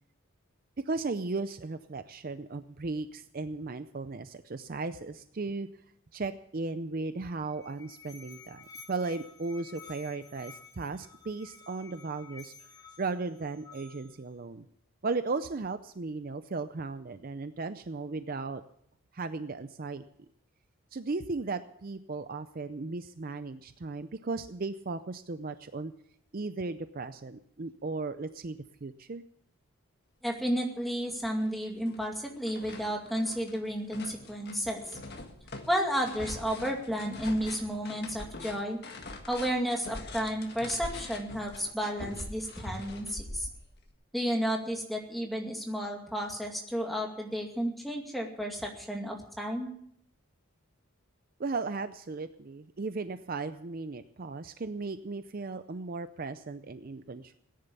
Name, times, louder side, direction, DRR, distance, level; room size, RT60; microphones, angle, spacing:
voice 1, 0.9-5.7 6.1-12.5 13.0-14.7 15.0-18.6 19.1-20.0 20.9-25.9 26.3-29.2 51.4-57.3, right 3 dB, 40° right, 11 dB, 0.5 m, -36 dB
Musical instrument, 7.3-14.3, left 5 dB, 15° left, 3.8 m, -52 dB
voice 2, 30.2-35.0 35.7-38.8 39.3-43.5 44.1-49.7, equal, ahead, 0 dB, 2.2 m, -32 dB
sound 1, 30.8-30.9 31.2-43.9, left 2 dB, 45° left, 1.7 m, -44 dB
17.5 x 10.5 x 6.8 m, 0.68 s
head